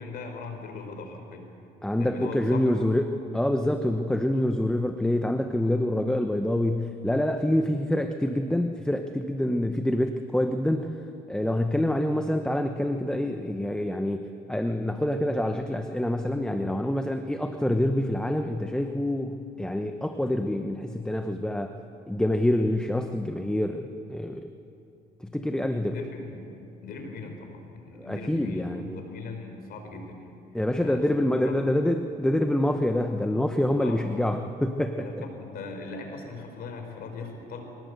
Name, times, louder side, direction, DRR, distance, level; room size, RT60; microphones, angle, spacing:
voice 1, 0.0-1.5 2.0-2.7 25.8-26.5 26.8-30.4 30.8-31.0 31.4-31.6 33.8-34.1 35.0-37.6, left 3 dB, 65° left, 4 dB, 4.6 m, -39 dB
voice 2, 1.8-21.8 22.1-24.5 25.2-26.0 28.0-29.0 30.5-35.2, left 1 dB, 5° left, 6 dB, 1.0 m, -26 dB
24.5 x 18.0 x 8.2 m, 2.8 s
cardioid pair, 110°, 17 cm